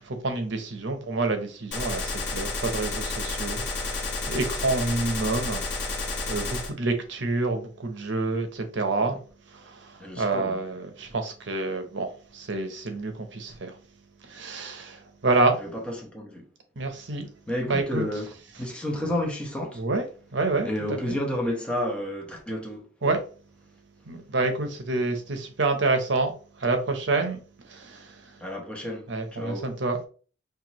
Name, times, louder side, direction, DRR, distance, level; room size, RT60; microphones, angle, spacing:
voice 1, 0.0-9.2 9.5-13.8 14.2-15.6 16.8-17.3 17.7-18.0 19.7-20.1 20.3-21.2 23.0-23.2 24.1-28.4 29.1-30.1, right 3 dB, 70° right, 0.8 m, -28 dB
Gunshot gunfire, 1.7-6.7, left 3 dB, 65° left, 1.2 m, -31 dB
voice 2, 10.0-10.6 15.6-16.5 17.5-18.3 18.6-19.8 20.6-22.9 28.4-29.7, left 1 dB, 5° left, 1.0 m, -31 dB
5.8 x 2.6 x 3.0 m
head